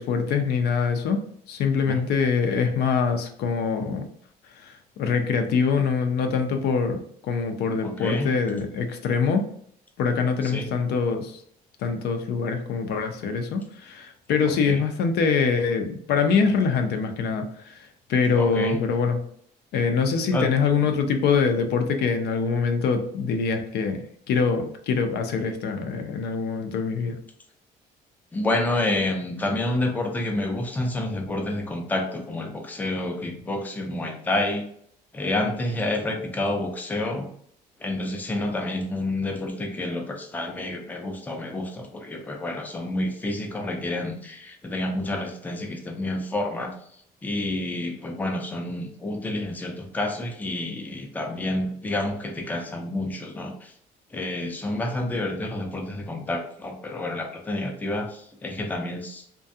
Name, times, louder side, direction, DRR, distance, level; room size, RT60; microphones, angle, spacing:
voice 1, 0.0-4.0 4.5-9.5 10.0-11.4 11.8-19.2 19.7-24.0 24.3-27.2, left 5 dB, 75° left, 6 dB, 0.4 m, -24 dB
voice 2, 7.8-8.3 10.4-10.7 14.6-14.8 18.3-18.8 20.3-20.5 28.3-34.6 35.1-37.3 37.8-46.7 47.2-53.7 54.1-59.2, left 1 dB, 10° left, 3 dB, 0.4 m, -29 dB
2.4 x 2.2 x 2.6 m, 0.64 s
cardioid pair, 110°, 17 cm